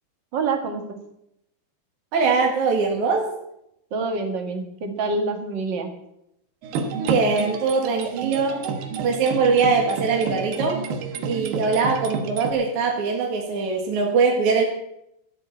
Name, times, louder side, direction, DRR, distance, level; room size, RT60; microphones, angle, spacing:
voice 1, 0.3-1.0 3.9-5.9, right 3 dB, 40° right, 4 dB, 1.9 m, -26 dB
voice 2, 2.1-3.3 7.0-8.7 9.0-10.8 11.3-14.7, right 4 dB, 60° right, 0 dB, 3.1 m, -22 dB
sound 1, 6.6-12.5, right 5 dB, 90° right, 3.1 m, -30 dB
14.5 x 8.0 x 8.5 m, 0.80 s
omnidirectional pair, 4.0 m